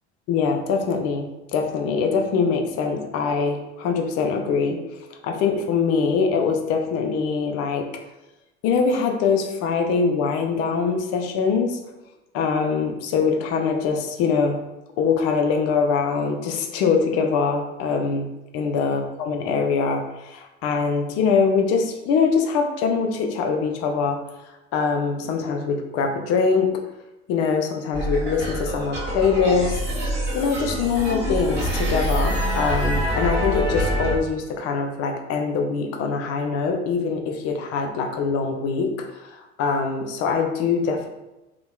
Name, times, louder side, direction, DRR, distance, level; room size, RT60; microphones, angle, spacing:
voice 1, 0.3-4.8 5.2-7.8 8.6-11.8 12.3-14.6 15.0-18.3 18.5-24.2 24.7-26.7 27.3-29.8 30.3-41.1, left 5 dB, 45° left, 4 dB, 0.5 m, -23 dB
sound 1, 27.9-34.2, equal, 30° right, 1.1 m, -25 dB
2.7 x 2.1 x 2.2 m, 0.99 s
hypercardioid pair, 70°, 35 cm